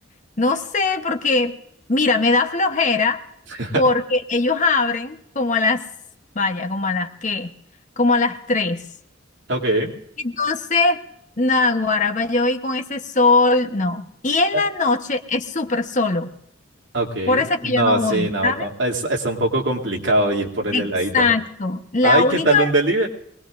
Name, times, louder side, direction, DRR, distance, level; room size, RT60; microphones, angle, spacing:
voice 1, 0.4-1.5 1.9-3.2 3.7-5.8 6.3-7.5 8.0-8.8 10.2-11.0 11.4-16.3 17.3-18.7 20.7-22.7, left 3 dB, 40° left, 7 dB, 1.0 m, -20 dB
voice 2, 9.5-9.9 14.5-14.6 16.9-21.3 22.0-23.1, right 2 dB, 65° right, 0 dB, 2.6 m, -21 dB
24.0 x 19.5 x 2.5 m, 0.74 s
head